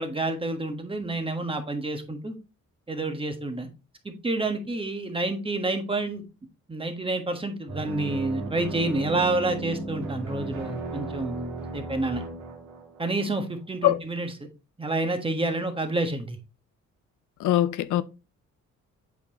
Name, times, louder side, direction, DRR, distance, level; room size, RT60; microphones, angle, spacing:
voice 1, 0.0-2.3 2.9-3.7 4.0-6.2 6.7-12.2 13.0-14.3 14.8-16.4, right 2 dB, 20° right, 1.4 m, -29 dB
sound 1, 7.7-13.4, right 3 dB, 70° right, 2.5 m, -35 dB
voice 2, 17.4-18.0, left 13 dB, 80° left, 0.6 m, -22 dB
8.3 x 4.6 x 2.9 m
cardioid pair, 90°, 30 cm